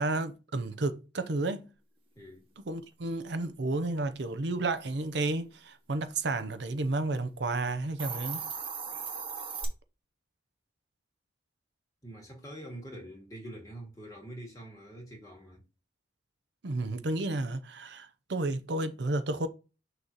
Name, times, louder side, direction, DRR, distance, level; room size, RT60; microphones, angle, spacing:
voice 1, 0.0-1.7 2.6-8.4 16.6-19.5, right 2 dB, 70° right, 0.7 m, -32 dB
voice 2, 2.2-2.5 12.0-15.6, right 1 dB, 20° left, 2.2 m, -45 dB
Hiss, 7.8-9.7, right 5 dB, 30° right, 1.3 m, -37 dB
6.4 x 3.0 x 5.5 m
head